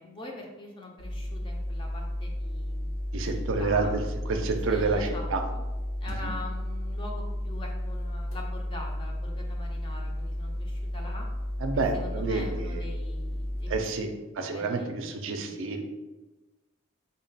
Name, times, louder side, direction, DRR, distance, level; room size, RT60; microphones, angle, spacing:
voice 1, 0.0-2.7 3.1-3.3 3.6-3.9 4.7-5.6 6.0-11.3 11.9-13.9 14.2-14.9 15.3-15.5, left 2 dB, 25° left, 0 dB, 0.5 m, -43 dB
sound 1, 1.0-13.8, left 1 dB, 65° left, 0.7 m, -33 dB
voice 2, 3.1-4.0 4.3-5.4 6.2-6.3 11.6-12.9 13.7-14.1 14.4-15.8, right 4 dB, 65° right, 5 dB, 0.4 m, -29 dB
3.6 x 2.2 x 4.0 m, 1.1 s
head